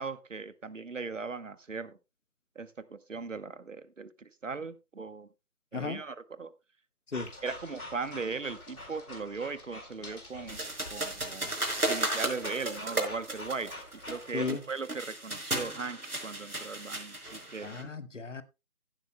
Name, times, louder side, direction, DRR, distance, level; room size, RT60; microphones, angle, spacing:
voice 1, 0.0-2.0 2.6-5.3 5.7-6.5 7.4-10.6 10.9-11.5 11.9-13.7 14.1-17.7, right 4 dB, 55° right, 1.0 m, -38 dB
sound 1, 7.1-14.6, left 2 dB, 70° left, 4.4 m, -46 dB
sound 2, 10.5-17.8, right 1 dB, 80° right, 5.0 m, -35 dB
voice 2, 14.3-14.6 17.6-18.4, left 4 dB, 55° left, 1.3 m, -35 dB
16.5 x 11.0 x 2.2 m
figure-of-eight pair, 160°, 45 cm